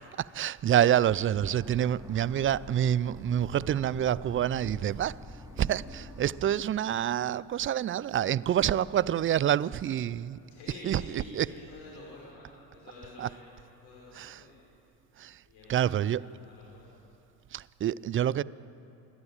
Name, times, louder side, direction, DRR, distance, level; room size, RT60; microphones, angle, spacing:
voice 1, 0.3-5.2 5.6-10.4 10.8-11.5 13.2-13.3 14.1-14.4 15.2-15.4 15.7-16.2 17.5-18.4, right 10 dB, 25° right, 0.4 m, -27 dB
sound 1, 1.2-6.6, right 1 dB, 85° right, 6.5 m, -61 dB
sound 2, 1.4-6.6, left 1 dB, 5° right, 2.6 m, -46 dB
voice 2, 10.5-14.6 15.5-16.0 16.3-16.9, left 2 dB, 65° left, 5.8 m, -49 dB
27.0 x 12.0 x 8.9 m
hypercardioid pair, 65°, 49 cm